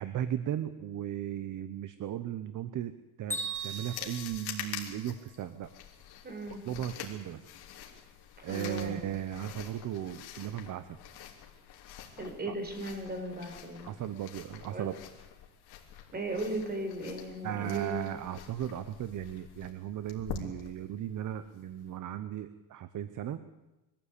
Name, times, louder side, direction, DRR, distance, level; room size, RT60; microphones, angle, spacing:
voice 1, 0.0-5.7 6.6-7.5 8.4-11.0 12.5-12.6 13.8-14.9 17.4-23.4, right 11 dB, 45° right, 13 dB, 1.0 m, -36 dB
Bell, 3.3-5.3, right 3 dB, 5° left, 4.5 m, -39 dB
sound 1, 3.5-21.9, left 9 dB, 65° left, 3.2 m, -46 dB
voice 2, 6.2-6.6 8.5-9.0 12.2-13.9 14.7-14.8 16.1-17.9, right 2 dB, 25° right, 4 dB, 4.7 m, -36 dB
22.5 x 14.5 x 8.5 m, 1.0 s
cardioid pair, 140°, 41 cm